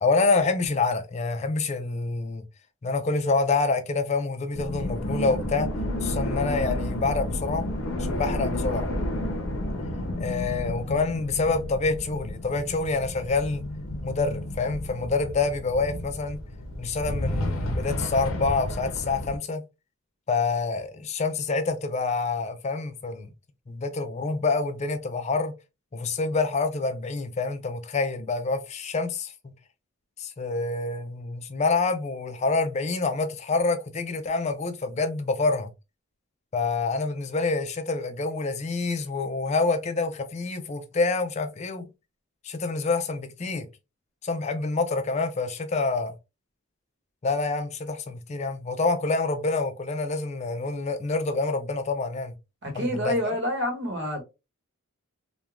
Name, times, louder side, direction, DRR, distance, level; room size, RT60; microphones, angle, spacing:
voice 1, 0.0-2.4 2.8-5.7 6.0-7.7 8.0-8.9 10.2-13.6 14.0-16.4 16.8-19.6 20.3-23.3 23.7-25.5 25.9-29.5 30.2-35.7 36.5-41.9 42.4-43.7 44.2-46.1 47.2-52.3 52.7-53.3, left 3 dB, 30° left, 0.4 m, -27 dB
sound 1, 4.5-19.4, left 1 dB, 70° left, 0.6 m, -31 dB
voice 2, 52.6-54.2, left 1 dB, 55° right, 1.0 m, -28 dB
3.1 x 2.2 x 2.3 m
head